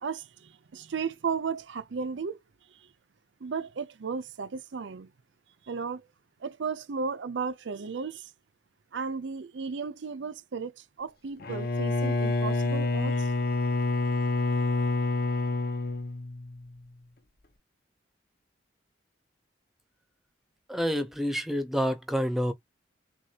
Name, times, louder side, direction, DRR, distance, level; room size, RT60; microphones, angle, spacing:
voice 1, 0.0-2.4 2.7-2.9 3.4-5.1 5.7-6.1 6.4-8.3 8.9-13.3, right 5 dB, 80° right, 0.5 m, -34 dB
Bowed string instrument, 11.4-16.7, left 2 dB, 55° left, 0.8 m, -28 dB
voice 2, 20.7-22.5, equal, ahead, 0.6 m, -28 dB
6.2 x 2.4 x 2.8 m
head